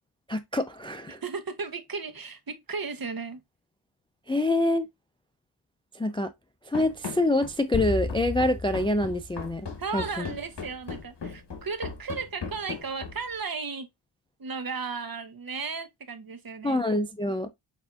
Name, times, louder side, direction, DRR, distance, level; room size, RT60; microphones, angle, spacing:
voice 1, 0.3-1.2 4.3-4.9 5.9-6.3 6.7-9.7 9.9-10.3 16.6-17.5, left 1 dB, 10° left, 0.3 m, -26 dB
voice 2, 1.1-3.4 9.8-13.9 14.4-16.8, right 5 dB, 45° right, 0.9 m, -35 dB
Run, 6.7-13.4, left 5 dB, 55° left, 1.2 m, -38 dB
sound 1, 7.7-10.2, left 2 dB, 25° left, 2.3 m, -34 dB
6.5 x 2.7 x 2.3 m
cardioid pair, 55°, 50 cm